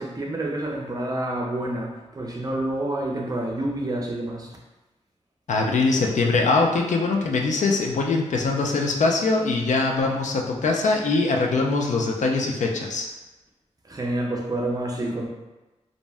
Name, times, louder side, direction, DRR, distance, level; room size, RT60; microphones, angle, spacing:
voice 1, 0.0-4.6 13.8-15.3, right 1 dB, 30° right, -1 dB, 0.5 m, -28 dB
voice 2, 5.5-13.1, left 3 dB, 80° left, 1 dB, 0.4 m, -22 dB
2.5 x 2.1 x 3.3 m, 1.1 s
wide cardioid pair, 90°, 12 cm